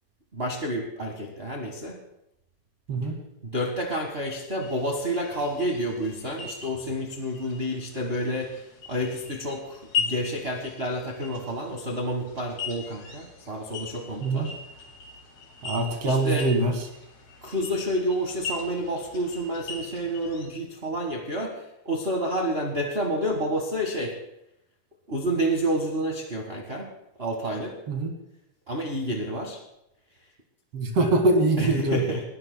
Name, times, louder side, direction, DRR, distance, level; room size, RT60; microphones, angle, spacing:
voice 1, 0.3-2.0 3.4-8.6 8.9-14.5 16.0-16.5 17.4-21.6 21.8-24.2 25.1-26.9 27.2-27.7 28.7-29.6 31.6-32.2, equal, 35° right, 0 dB, 1.1 m, -29 dB
sound 1, 4.6-20.5, left 5 dB, 70° left, 3.4 m, -39 dB
voice 2, 15.6-16.7 27.9-28.1 30.7-32.0, right 2 dB, 55° right, 4 dB, 2.7 m, -23 dB
20.5 x 14.5 x 2.2 m, 0.81 s
omnidirectional pair, 3.4 m